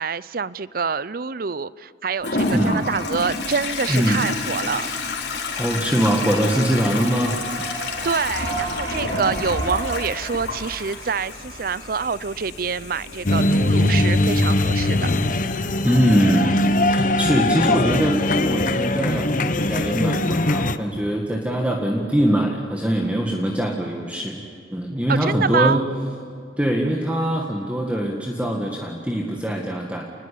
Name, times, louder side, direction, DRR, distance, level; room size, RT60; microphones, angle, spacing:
voice 1, 0.0-4.9 8.0-15.1 25.1-25.8, right 5 dB, 55° right, 19 dB, 0.6 m, -26 dB
Toilet flush, 2.2-15.8, left 3 dB, 70° left, 3.8 m, -30 dB
voice 2, 2.5-2.8 3.9-4.2 5.6-7.4 15.8-24.4 24.7-25.8 26.6-30.0, right 1 dB, 10° right, 0 dB, 1.9 m, -22 dB
Human voice / Clapping / Cheering, 6.0-11.9, right 2 dB, 85° right, 6.5 m, -34 dB
sound 1, 13.3-20.8, left 1 dB, 50° left, 1.0 m, -21 dB
28.0 x 20.5 x 8.5 m, 2.5 s
head